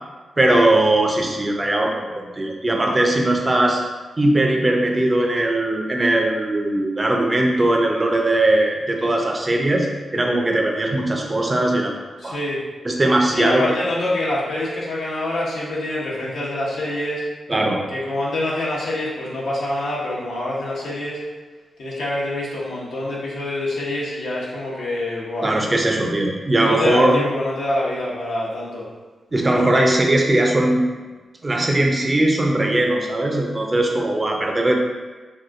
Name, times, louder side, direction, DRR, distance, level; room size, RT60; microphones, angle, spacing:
voice 1, 0.4-3.8 4.2-11.9 12.2-12.4 12.8-13.8 17.5-17.8 25.4-27.3 29.3-30.8 31.4-34.7, right 1 dB, 30° right, 1 dB, 0.5 m, -19 dB
voice 2, 12.2-12.6 13.3-17.3 17.9-21.2 21.8-25.5 26.6-28.8, left 1 dB, 85° left, -7 dB, 0.8 m, -25 dB
3.3 x 2.8 x 2.4 m, 1.3 s
cardioid pair, 70°, 0 cm